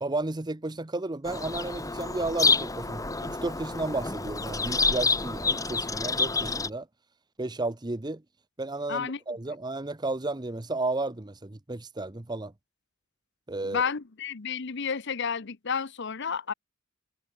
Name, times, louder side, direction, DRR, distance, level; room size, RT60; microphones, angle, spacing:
voice 1, 0.0-6.9 7.4-8.2 8.6-12.5 13.5-13.9, right 2 dB, 20° right, 0.8 m, -33 dB
Bird vocalization bird call bird song, 1.3-6.7, left 4 dB, 15° left, 1.9 m, -28 dB
voice 2, 8.9-9.2 13.6-16.5, left 6 dB, 60° left, 0.9 m, -31 dB
head